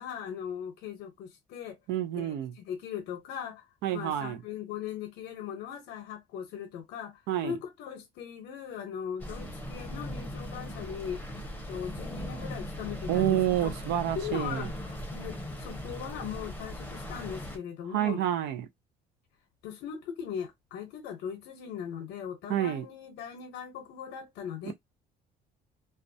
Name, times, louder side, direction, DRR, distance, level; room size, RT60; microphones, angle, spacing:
voice 1, 0.0-1.8 2.1-3.6 3.9-11.4 11.7-13.7 14.1-18.2 19.6-24.7, left 8 dB, 85° left, 0.7 m, -39 dB
voice 2, 1.9-2.5 3.8-4.4 7.3-7.5 13.1-14.6 17.9-18.7 22.5-22.9 24.7-24.8, right 12 dB, 85° right, 0.5 m, -28 dB
sound 1, 9.2-17.6, left 1 dB, 10° left, 0.7 m, -39 dB
2.3 x 2.1 x 2.6 m
cardioid pair, 110°, 17 cm